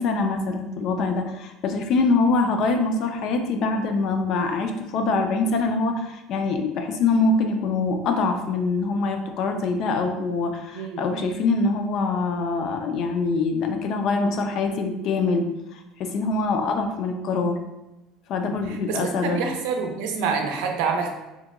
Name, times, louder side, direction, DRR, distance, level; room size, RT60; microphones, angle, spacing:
voice 1, 0.0-17.6 18.3-19.4, left 3 dB, 45° left, 5 dB, 0.3 m, -24 dB
voice 2, 10.7-11.0 18.5-21.1, right 5 dB, 80° right, 3 dB, 0.5 m, -27 dB
2.8 x 2.2 x 3.5 m, 0.99 s
cardioid pair, 160°, 0 cm